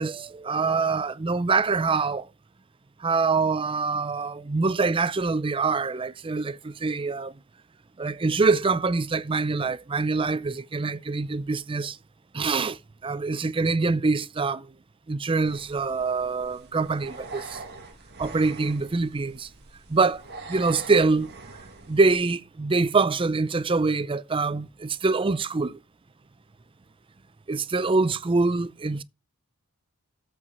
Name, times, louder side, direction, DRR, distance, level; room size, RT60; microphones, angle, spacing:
voice 1, 0.0-2.2 3.0-7.3 8.0-11.9 12.3-12.8 13.0-14.6 15.1-17.4 18.2-19.5 19.9-20.2 20.5-21.3 21.9-25.8 27.5-29.0, right 4 dB, 25° right, 0.5 m, -24 dB
sound 1, 15.4-22.2, right 3 dB, 50° right, 1.9 m, -44 dB
8.2 x 5.6 x 7.8 m
head